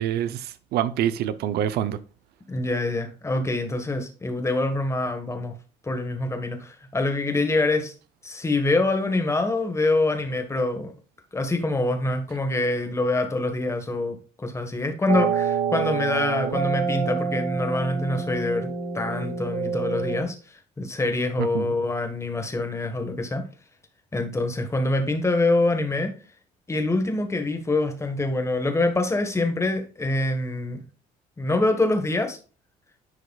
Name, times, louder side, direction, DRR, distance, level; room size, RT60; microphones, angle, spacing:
voice 1, 0.0-2.0 21.4-21.7, right 11 dB, 70° right, 0.6 m, -26 dB
voice 2, 2.5-5.5 5.8-7.9 8.2-10.9 11.3-20.3 20.8-23.4 24.1-26.1 26.7-30.8 31.4-32.4, left 2 dB, 15° left, 1.4 m, -25 dB
sound 1, 15.1-20.2, right 6 dB, 90° right, 1.9 m, -27 dB
10.5 x 4.7 x 2.3 m
cardioid pair, 110°, 17 cm